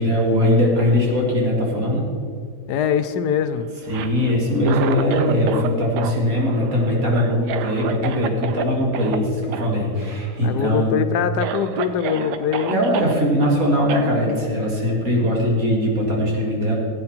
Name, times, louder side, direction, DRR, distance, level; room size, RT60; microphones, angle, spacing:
voice 1, 0.0-2.0 3.9-10.9 12.7-16.7, left 1 dB, 55° right, -2 dB, 3.0 m, -20 dB
voice 2, 2.7-3.7 10.4-12.8, left 8 dB, 75° left, 10 dB, 1.2 m, -23 dB
Cough, 3.8-5.7 6.0-8.6 8.9-9.2 9.5-9.7 10.0-10.5 11.0-11.1 11.4-13.1 13.9-14.1, right 8 dB, 80° right, 1.3 m, -29 dB
15.5 x 9.1 x 4.5 m, 2.3 s
omnidirectional pair, 1.8 m